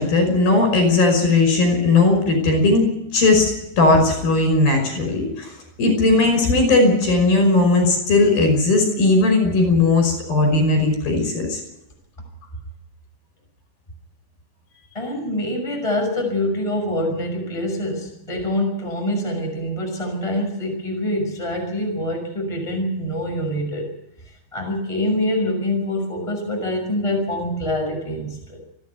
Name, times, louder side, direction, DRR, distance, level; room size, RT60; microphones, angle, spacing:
voice 1, 0.0-5.5 5.8-11.6, left 2 dB, 70° left, 5 dB, 7.3 m, -17 dB
voice 2, 14.9-23.9 24.5-28.6, left 1 dB, 10° left, 2 dB, 5.9 m, -25 dB
30.0 x 10.5 x 9.5 m, 0.86 s
omnidirectional pair, 4.4 m